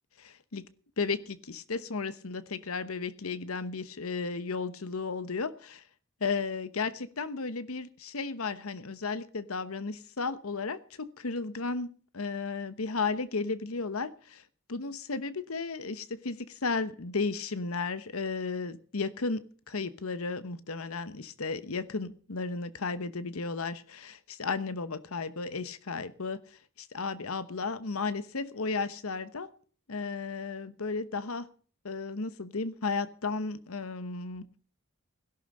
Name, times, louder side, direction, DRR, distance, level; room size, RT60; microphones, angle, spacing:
voice 1, 0.2-0.6 1.0-5.8 6.2-14.4 14.7-29.5 29.9-31.5 31.8-34.5, left 4 dB, 85° left, 14 dB, 1.0 m, -34 dB
17.5 x 11.5 x 5.4 m, 0.43 s
head